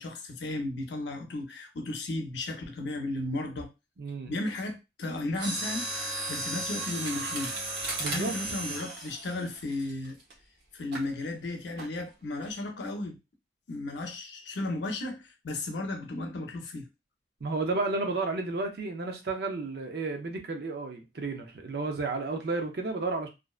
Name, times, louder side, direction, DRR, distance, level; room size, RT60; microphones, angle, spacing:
voice 1, 0.0-3.7 4.3-5.9 6.3-7.5 8.1-10.2 10.7-13.2 13.7-16.9, left 2 dB, 80° left, 0.6 m, -34 dB
voice 2, 4.0-4.3 8.0-8.4 17.4-23.3, right 3 dB, 60° right, 0.5 m, -32 dB
Mechanisms, 5.3-10.3 10.9-11.1 11.8-12.1 12.4-12.5, right 2 dB, 80° right, 0.9 m, -35 dB
2.5 x 2.1 x 2.3 m
head